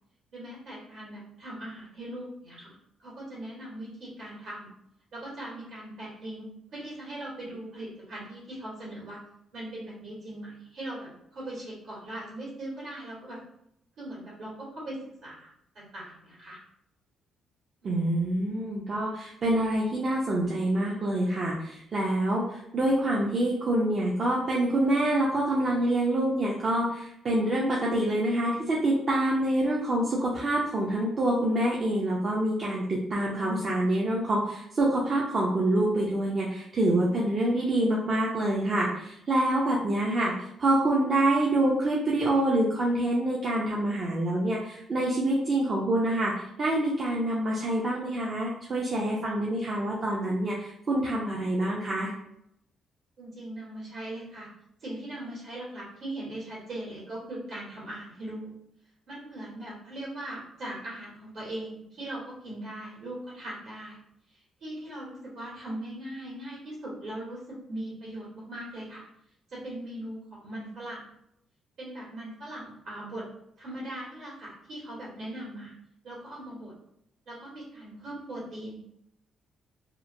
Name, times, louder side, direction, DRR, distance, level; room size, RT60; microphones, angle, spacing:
voice 1, 0.3-2.7 3.0-4.7 5.1-9.2 9.5-13.4 14.0-16.6 53.2-54.5 54.8-58.5 59.1-64.0 64.3-69.1 69.5-71.1 71.8-73.2 73.6-75.7 76.0-76.7 77.2-78.9, right 1 dB, 65° right, -6 dB, 1.5 m, -40 dB
voice 2, 17.8-40.3 40.6-46.3 46.6-52.1, right 1 dB, 45° right, -4 dB, 0.5 m, -26 dB
2.9 x 2.0 x 2.5 m, 0.77 s
cardioid pair, 90°, 0 cm